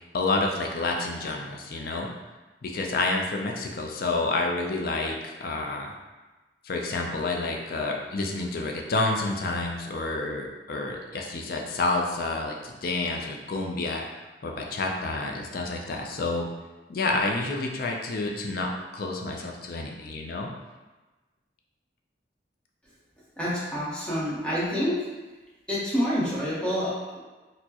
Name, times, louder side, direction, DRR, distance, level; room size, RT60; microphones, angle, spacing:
voice 1, 0.1-2.1 2.6-5.9 6.6-14.0 14.4-16.5 16.9-20.5, left 2 dB, 55° left, 1 dB, 0.5 m, -29 dB
voice 2, 23.4-25.1 25.7-27.2, equal, 5° left, -9 dB, 1.0 m, -27 dB
4.3 x 2.1 x 2.9 m, 1.2 s
head